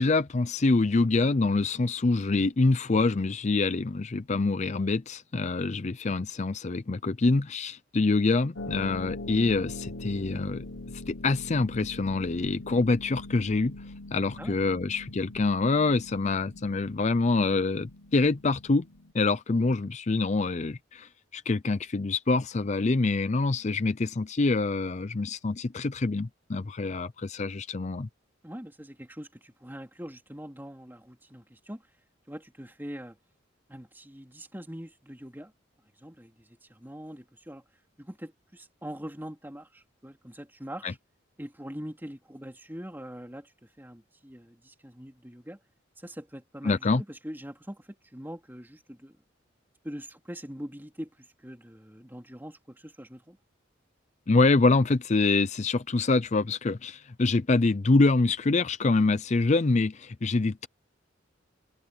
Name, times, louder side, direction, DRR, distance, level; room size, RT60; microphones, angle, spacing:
voice 1, 0.0-10.6 11.1-13.8 14.1-18.9 19.1-28.1 40.8-40.9 46.6-47.0 54.3-60.7, left 3 dB, 35° left, 0.5 m, -25 dB
Harp, 8.6-19.1, left 2 dB, 75° left, 1.2 m, -42 dB
voice 2, 28.4-31.9 32.3-33.2 33.7-35.5 36.0-37.6 38.0-41.0 41.4-45.6 46.0-49.2 49.8-53.4, equal, 10° right, 2.9 m, -43 dB
head